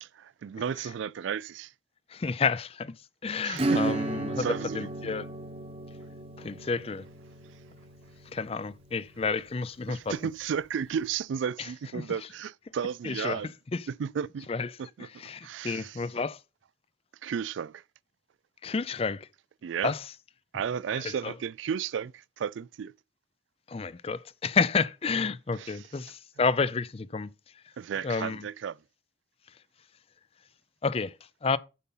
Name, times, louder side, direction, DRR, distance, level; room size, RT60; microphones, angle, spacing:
voice 1, 0.0-1.7 3.4-4.0 4.4-4.8 9.9-13.5 13.9-14.5 14.8-15.1 15.4-16.0 17.2-17.8 19.6-19.9 20.5-22.9 25.5-25.9 27.8-28.8, right 7 dB, 85° right, 0.3 m, -33 dB
voice 2, 2.1-2.9 3.2-4.5 4.7-5.3 6.4-7.0 8.3-10.1 11.9-12.0 13.0-13.4 13.7-13.8 14.5-14.7 15.2-16.4 18.6-19.3 19.8-20.0 21.2-21.3 23.7-27.3 28.0-28.4 30.8-31.1 31.4-31.6, left 4 dB, 30° left, 0.4 m, -30 dB
Acoustic guitar / Strum, 3.5-9.8, right 2 dB, 30° right, 1.0 m, -34 dB
8.4 x 5.4 x 5.5 m
head